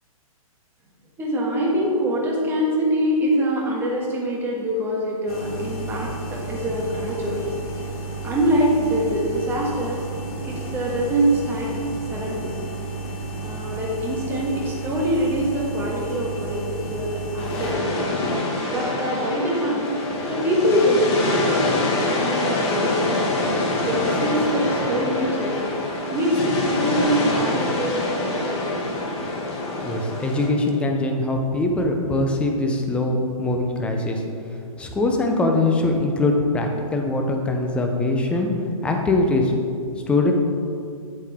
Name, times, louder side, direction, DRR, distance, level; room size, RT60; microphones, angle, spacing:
voice 1, 1.2-7.4 8.2-10.0 10.4-11.7 12.1-12.5 13.4-18.1 18.7-20.0 20.3-21.4 21.7-23.4 23.9-25.7 26.1-28.8, equal, 10° right, -4 dB, 1.4 m, -24 dB
sound 1, 5.3-17.7, right 3 dB, 80° left, 2.0 m, -32 dB
sound 2, 17.4-30.5, left 2 dB, 45° left, 1.6 m, -25 dB
voice 2, 29.8-34.2 34.8-38.5 38.8-39.5 40.1-40.3, left 2 dB, 5° left, 2 dB, 0.5 m, -22 dB
8.3 x 7.5 x 3.5 m, 2.4 s
hypercardioid pair, 150°, 19 cm